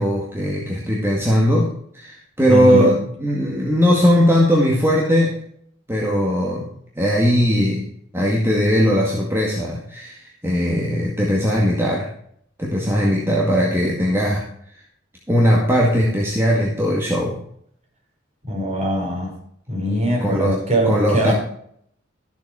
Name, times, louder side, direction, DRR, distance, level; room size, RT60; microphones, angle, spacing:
voice 1, 0.0-5.4 5.9-7.9 8.1-12.1 12.6-14.5 15.3-17.4 20.2-20.6 20.8-21.3, equal, 10° right, -3 dB, 2.0 m, -19 dB
voice 2, 2.5-2.9 18.5-19.3 19.7-21.3, equal, 35° right, -2 dB, 5.8 m, -21 dB
14.0 x 7.2 x 4.9 m, 0.65 s
head